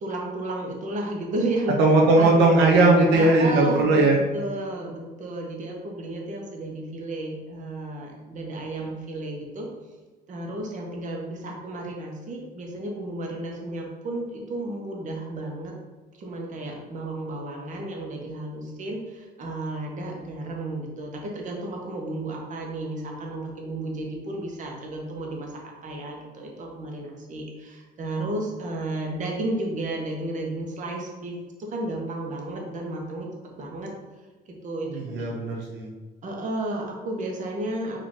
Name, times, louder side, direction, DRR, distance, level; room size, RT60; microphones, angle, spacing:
voice 1, 0.0-1.8 2.2-2.4 3.1-4.1 4.3-9.7 10.3-15.7 16.2-31.3 31.7-33.3 33.6-33.9 34.6-35.3 36.2-38.0, right 2 dB, 50° right, 0 dB, 1.1 m, -32 dB
voice 2, 1.8-4.2 34.9-35.9, right 2 dB, 85° right, -1 dB, 0.7 m, -18 dB
5.0 x 2.9 x 3.6 m, 1.3 s
cardioid pair, 110°, 17 cm